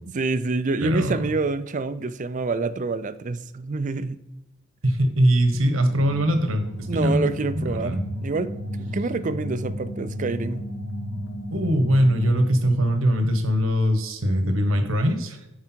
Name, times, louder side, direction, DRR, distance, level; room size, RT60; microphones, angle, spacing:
voice 1, 0.1-4.2 6.9-10.7, right 3 dB, 40° right, 13 dB, 0.4 m, -27 dB
voice 2, 0.8-1.3 4.8-7.3 7.6-8.0 11.5-15.4, equal, 80° right, 7 dB, 1.3 m, -21 dB
sound 1, 5.7-13.0, equal, 55° left, 1.4 m, -33 dB
9.9 x 4.8 x 4.5 m, 0.92 s
head